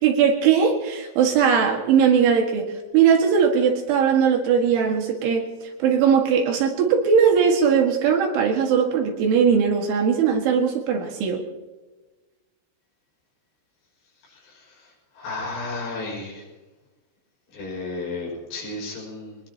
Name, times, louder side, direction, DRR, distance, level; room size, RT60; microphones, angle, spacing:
voice 1, 0.0-11.4, right 7 dB, 70° right, 2 dB, 4.1 m, -19 dB
voice 2, 15.2-16.4 17.5-19.4, left 3 dB, 60° left, -3 dB, 8.1 m, -32 dB
23.0 x 20.5 x 2.9 m, 1.2 s
omnidirectional pair, 5.8 m